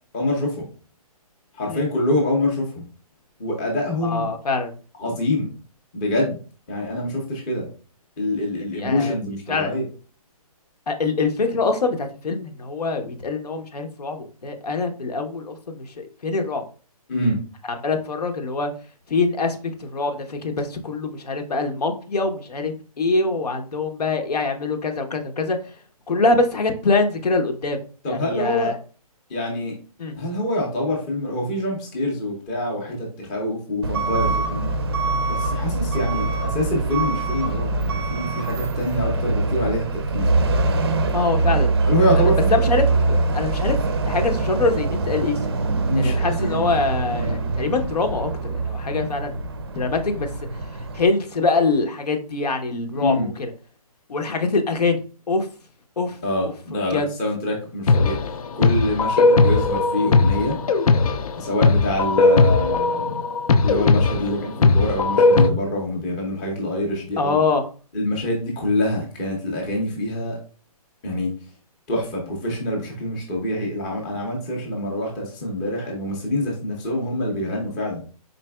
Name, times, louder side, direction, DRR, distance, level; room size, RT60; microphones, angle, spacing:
voice 1, 0.1-0.7 1.5-2.8 3.4-4.3 5.0-5.5 5.9-6.4 6.7-7.7 8.2-9.9 17.1-17.4 28.0-28.7 29.3-29.8 30.2-34.7 35.3-40.3 41.9-42.7 45.8-46.7 47.0-47.3 52.9-53.3 56.2-58.2 58.5-60.6 61.4-63.1 63.6-67.4 67.9-70.4 71.0-71.3 71.9-78.1, left 1 dB, 10° left, -1 dB, 0.5 m, -25 dB
voice 2, 4.0-4.7 8.7-9.2 9.5-9.8 10.9-16.6 17.8-18.7 19.1-25.6 26.1-27.8 28.1-28.8 30.0-30.1 41.1-41.7 42.2-43.8 44.1-45.5 45.9-49.3 49.7-50.3 50.9-53.5 54.1-55.0 55.3-55.5 56.0-56.2 56.4-56.5 56.9-57.1 59.2-59.3 67.2-67.7, left 3 dB, 85° left, 5 dB, 0.9 m, -24 dB
Truck / Alarm, 33.8-51.1, right 3 dB, 40° right, 0.4 m, -23 dB
sound 1, 57.9-65.5, left 3 dB, 65° left, 0.5 m, -18 dB
4.1 x 3.9 x 2.2 m, 0.38 s
hypercardioid pair, 170°, 20 cm